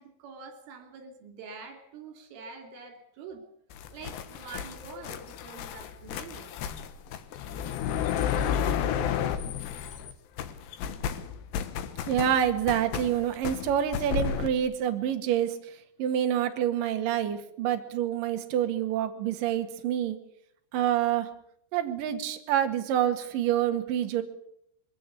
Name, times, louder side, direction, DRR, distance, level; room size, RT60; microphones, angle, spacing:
voice 1, 0.0-3.5 3.9-6.5 7.6-7.7, right 4 dB, 80° right, 6 dB, 5.7 m, -45 dB
sound 1, 3.7-10.1 10.4-14.5, left 8 dB, 70° left, 3.1 m, -32 dB
voice 2, 12.1-15.6 16.0-20.2 20.7-21.3 21.7-24.2, right 10 dB, 55° right, 5 dB, 2.9 m, -27 dB
22.0 x 17.0 x 8.4 m, 0.72 s
omnidirectional pair, 5.6 m